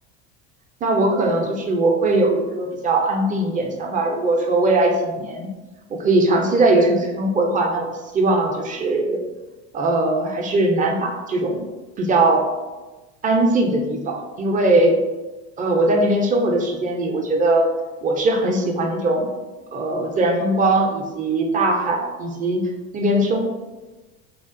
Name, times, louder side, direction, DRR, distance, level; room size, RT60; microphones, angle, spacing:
voice 1, 0.8-5.5 5.9-9.2 9.7-11.6 12.0-12.5 13.2-15.0 15.6-17.7 18.0-19.3 19.7-23.5, right 2 dB, 25° right, 2 dB, 0.4 m, -20 dB
2.8 x 2.3 x 2.5 m, 1.2 s
hypercardioid pair, 90°, 35 cm